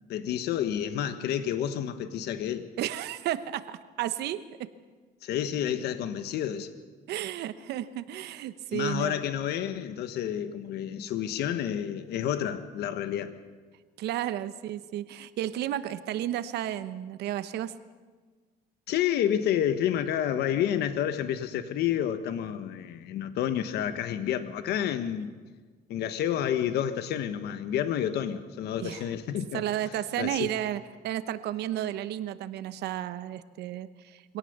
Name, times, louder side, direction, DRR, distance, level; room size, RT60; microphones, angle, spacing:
voice 1, 0.1-2.7 5.2-6.7 8.7-13.3 18.9-25.3 25.9-29.6 30.2-30.5, left 10 dB, 75° left, 10 dB, 1.3 m, -29 dB
voice 2, 2.8-4.7 7.1-9.2 14.0-17.7 28.8-29.1 29.5-34.4, right 12 dB, 75° right, 13 dB, 1.0 m, -33 dB
24.0 x 17.5 x 6.8 m, 1.4 s
cardioid pair, 110°, 17 cm